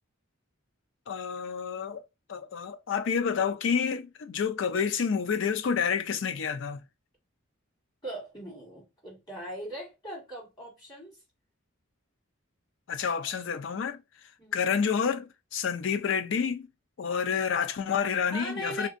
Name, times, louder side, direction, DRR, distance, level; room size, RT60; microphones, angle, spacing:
voice 1, 1.1-2.0 2.3-6.8 12.9-14.0 14.5-16.7 17.0-18.9, left 6 dB, 65° left, 0.4 m, -29 dB
voice 2, 8.0-11.2 14.4-14.6 18.3-18.9, equal, 20° left, 1.5 m, -40 dB
3.3 x 2.7 x 2.5 m
head